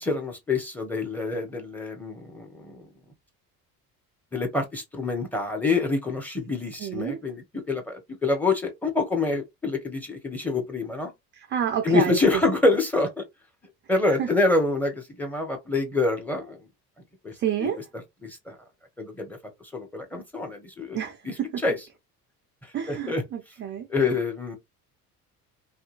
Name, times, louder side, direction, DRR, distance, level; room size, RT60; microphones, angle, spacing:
voice 1, 0.0-2.9 4.3-11.1 11.8-13.2 13.9-16.6 17.2-17.3 17.6-18.5 19.0-19.4 19.7-21.0 21.2-21.8 22.9-23.2 23.9-24.6, left 3 dB, 5° left, 1.0 m, -26 dB
voice 2, 6.8-7.2 11.5-12.2 14.2-14.3 17.4-17.8 20.9-21.6 22.7-24.1, right 9 dB, 25° right, 0.4 m, -29 dB
2.7 x 2.3 x 2.5 m
figure-of-eight pair, 55°, 47 cm